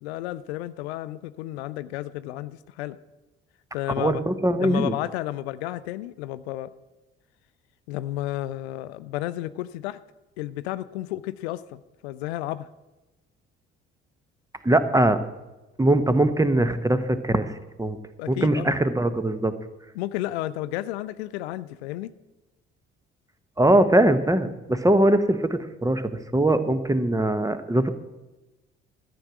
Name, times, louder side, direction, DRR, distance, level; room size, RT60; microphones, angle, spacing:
voice 1, 0.0-3.0 3.7-4.2 4.5-6.7 7.9-10.0 10.4-12.7 18.2-18.7 19.9-22.1, left 15 dB, 75° left, 16 dB, 0.5 m, -32 dB
voice 2, 4.0-4.9 14.6-15.2 15.8-18.0 18.3-19.5 23.6-26.0 26.3-27.9, right 1 dB, 10° right, 12 dB, 1.0 m, -21 dB
13.0 x 7.8 x 6.1 m, 1.1 s
figure-of-eight pair, 50°, 32 cm